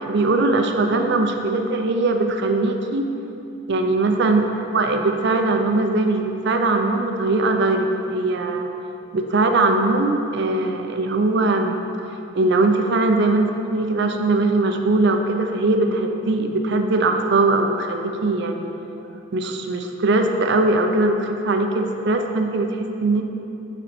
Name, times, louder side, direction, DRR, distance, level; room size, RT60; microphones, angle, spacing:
voice 1, 0.0-3.1 3.7-4.5 4.7-8.7 9.1-11.8 12.3-18.7 19.3-23.2, right 2 dB, 60° right, 5 dB, 0.5 m, -20 dB
9.1 x 4.4 x 4.3 m, 2.9 s
head